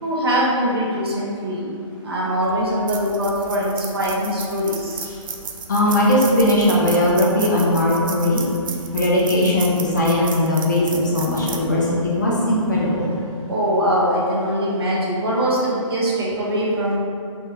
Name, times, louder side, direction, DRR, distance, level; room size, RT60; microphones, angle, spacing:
voice 1, 0.0-1.7 2.0-5.1 13.5-17.0, equal, 45° right, -5 dB, 0.8 m, -22 dB
sound 1, 2.3-12.8, right 5 dB, 75° right, 0.4 m, -34 dB
voice 2, 5.7-8.4 8.9-13.2, left 1 dB, 35° left, -5 dB, 0.5 m, -19 dB
3.6 x 2.5 x 2.7 m, 2.4 s
hypercardioid pair, 175°, 17 cm